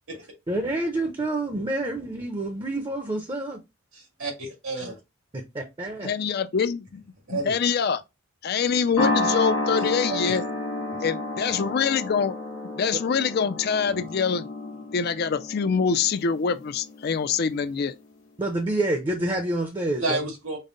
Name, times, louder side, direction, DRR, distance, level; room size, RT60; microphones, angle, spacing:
voice 1, 0.5-3.6 5.3-6.1 18.4-20.2, right 1 dB, 20° right, 0.6 m, -28 dB
voice 2, 3.9-5.0 7.3-7.5 10.1-10.4 20.0-20.6, right 2 dB, 85° right, 2.1 m, -30 dB
voice 3, 6.0-7.0 7.3-8.0 8.4-10.4 11.0-12.4 12.8-14.4 14.9-18.0, left 6 dB, 50° left, 0.4 m, -25 dB
sound 1, 9.0-17.5, left 2 dB, 90° left, 1.2 m, -30 dB
5.3 x 2.1 x 3.8 m
head